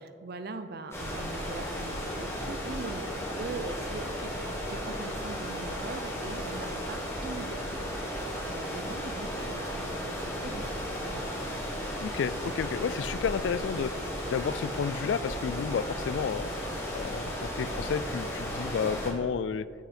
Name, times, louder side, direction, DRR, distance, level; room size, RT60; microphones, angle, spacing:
voice 1, 0.0-10.7 11.0-11.3, right 3 dB, 55° right, 9 dB, 0.6 m, -41 dB
sound 1, 0.9-19.1, equal, 15° left, 1.7 m, -35 dB
voice 2, 12.0-13.9 14.3-16.5 16.9-17.2 17.6-19.7, left 6 dB, 70° left, 17 dB, 0.3 m, -31 dB
8.1 x 7.8 x 4.3 m, 2.1 s
head